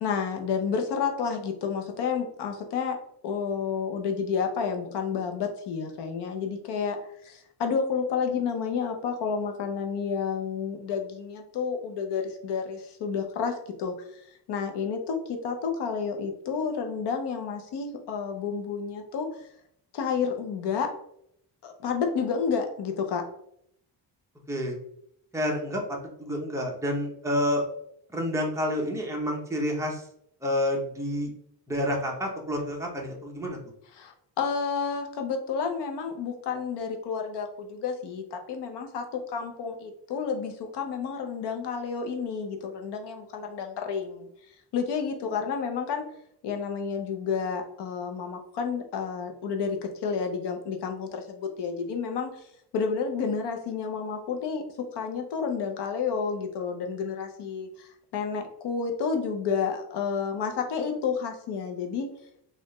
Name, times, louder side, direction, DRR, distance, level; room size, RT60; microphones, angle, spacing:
voice 1, 0.0-3.0 3.2-7.0 7.2-13.9 14.5-19.3 19.9-20.9 21.6-23.3 33.9-44.3 44.7-46.0 46.4-52.4 52.7-62.1, left 6 dB, 75° left, 4 dB, 0.8 m, -30 dB
voice 2, 25.3-27.6 28.1-30.0 30.4-31.3 31.7-33.6, equal, 5° right, -1 dB, 0.6 m, -29 dB
4.2 x 2.5 x 3.0 m, 0.72 s
cardioid pair, 165°, 42 cm